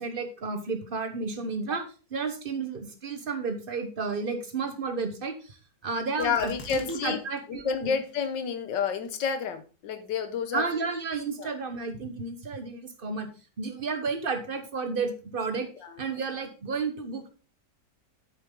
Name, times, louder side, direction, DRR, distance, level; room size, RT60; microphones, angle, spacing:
voice 1, 0.0-1.8 2.1-5.6 5.8-7.9 10.5-13.3 13.6-15.7 16.0-17.3, right 4 dB, 35° right, 8 dB, 1.0 m, -32 dB
voice 2, 6.2-7.2 7.5-10.6 11.4-11.5 15.8-15.9, left 6 dB, 85° left, 10 dB, 1.7 m, -29 dB
sound 1, 6.2-7.1 7.4-7.5 8.0-8.5 9.0-9.1, left 2 dB, 60° left, 2.1 m, -44 dB
8.6 x 7.1 x 3.7 m, 0.35 s
omnidirectional pair, 1.9 m